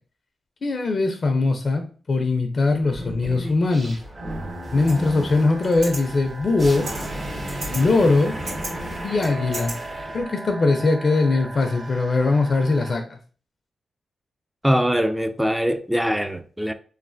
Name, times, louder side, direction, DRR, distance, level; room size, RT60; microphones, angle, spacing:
voice 1, 0.6-4.0 4.7-6.9 7.7-8.4 9.0-9.7 10.1-13.2, left 3 dB, 55° left, 0.4 m, -21 dB
sound 1, 2.8-10.2, equal, 65° right, 1.1 m, -34 dB
sound 2, 4.1-13.0, right 2 dB, 40° right, 1.0 m, -38 dB
sound 3, 4.9-5.0 5.6-6.0 6.8-7.1 7.5-7.8 8.2-8.7 9.2-9.7, right 2 dB, 85° right, 1.3 m, -34 dB
voice 2, 14.6-16.7, equal, 5° right, 0.3 m, -22 dB
3.1 x 2.1 x 2.5 m
supercardioid pair, 45°, 0 cm